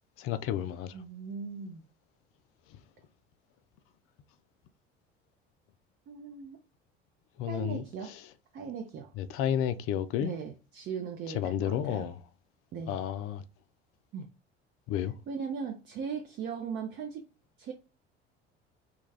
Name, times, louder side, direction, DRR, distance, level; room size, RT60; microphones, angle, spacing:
voice 1, 0.2-0.9 7.4-7.8 9.2-10.3 11.3-12.2 12.9-13.4 14.9-15.1, left 10 dB, 45° left, 0.4 m, -31 dB
voice 2, 0.9-1.8 6.1-6.6 7.5-8.2 8.5-9.1 10.2-12.1 12.7-13.0 14.1-14.3 15.3-17.2 17.6-17.7, right 6 dB, 35° right, 0.5 m, -38 dB
2.3 x 2.3 x 3.2 m
figure-of-eight pair, 60°, 32 cm